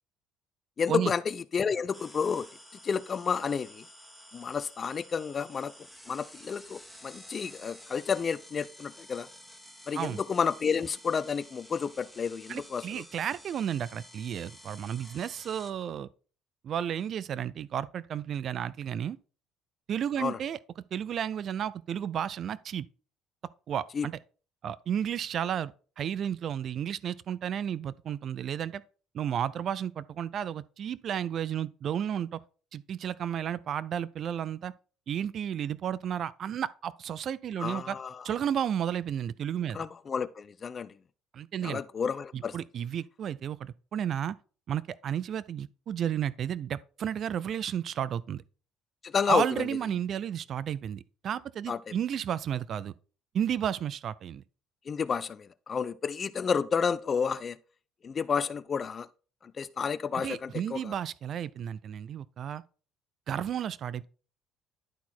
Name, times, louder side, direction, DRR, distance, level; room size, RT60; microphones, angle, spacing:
voice 1, 0.8-2.5 2.8-3.8 4.3-5.7 6.1-9.3 9.9-13.0 20.2-20.4 23.9-24.1 37.6-38.2 39.7-40.9 41.6-42.6 49.0-49.6 51.7-51.9 54.9-57.6 58.0-59.1 59.4-60.9, left 6 dB, 35° left, 0.4 m, -30 dB
sound 1, 1.9-15.7, equal, 5° right, 1.6 m, -51 dB
voice 2, 12.5-16.1 16.6-19.2 19.9-20.6 20.9-22.9 23.7-24.2 24.6-28.8 29.1-32.4 32.7-34.7 35.1-38.0 38.2-39.9 41.3-41.8 42.3-44.4 44.7-48.4 49.3-52.9 53.3-54.4 60.1-62.6 63.3-64.1, right 9 dB, 50° right, 0.4 m, -32 dB
11.5 x 4.1 x 4.3 m
cardioid pair, 115°, 0 cm